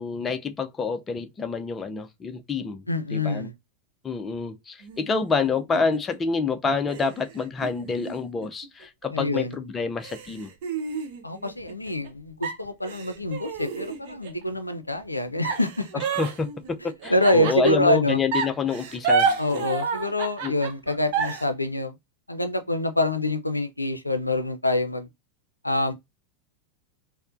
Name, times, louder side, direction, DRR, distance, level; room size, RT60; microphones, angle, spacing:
voice 1, 0.0-2.8 3.1-3.5 4.0-10.5 16.1-16.5 17.0-19.7 20.4-20.5, left 5 dB, 20° left, 0.4 m, -27 dB
voice 2, 2.9-3.5 9.1-9.6 11.2-15.9 17.1-18.2 19.4-22.0 22.3-25.1 25.6-25.9, left 1 dB, 85° left, 0.4 m, -25 dB
sound 1, 4.8-6.2 6.9-9.1 9.5-9.6 10.0-12.1 12.4-14.4 15.4-17.9 18.3-21.4, right 5 dB, 50° right, 0.7 m, -30 dB
4.2 x 2.0 x 2.5 m
figure-of-eight pair, 90°, 0 cm